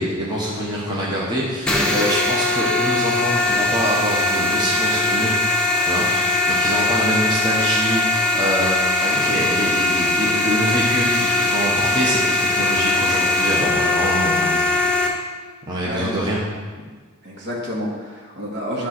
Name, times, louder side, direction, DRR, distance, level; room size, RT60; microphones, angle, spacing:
voice 1, 0.0-5.4 5.8-14.8 15.7-16.4, equal, 20° right, -5 dB, 1.1 m, -25 dB
sound 1, 1.7-15.1, left 2 dB, 5° left, 1.0 m, -20 dB
voice 2, 15.8-16.2 17.2-18.9, equal, 55° right, -3 dB, 1.8 m, -29 dB
10.5 x 3.8 x 6.0 m, 1.5 s
head